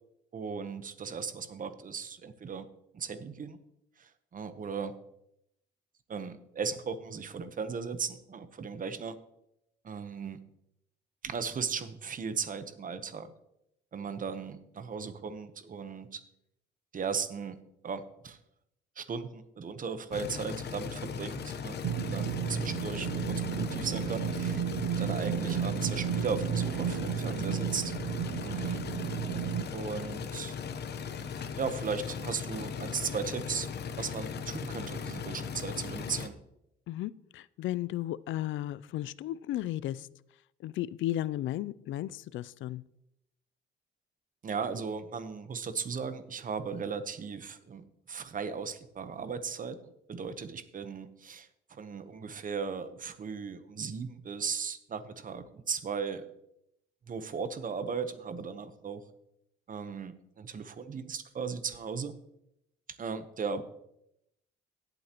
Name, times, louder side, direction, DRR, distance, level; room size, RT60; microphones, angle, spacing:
voice 1, 0.3-2.7 2.9-3.6 4.0-4.9 6.1-9.1 9.8-10.4 11.2-13.3 13.9-16.2 16.9-17.6 17.8-18.4 19.0-21.8 22.1-24.6 24.9-27.9 28.4-28.8 29.7-30.6 31.6-33.7 34.0-36.3 44.4-49.8 50.1-56.3 57.1-59.0 59.7-62.1 63.0-63.6, right 5 dB, 45° right, 11 dB, 1.0 m, -37 dB
sound 1, 20.1-36.3, left 6 dB, 55° left, 0.9 m, -38 dB
sound 2, 21.8-29.6, right 9 dB, 85° right, 0.6 m, -33 dB
voice 2, 36.9-40.1 40.6-42.8, left 13 dB, 75° left, 19 dB, 0.4 m, -34 dB
17.5 x 7.9 x 3.0 m, 0.81 s
cardioid pair, 90°, 20 cm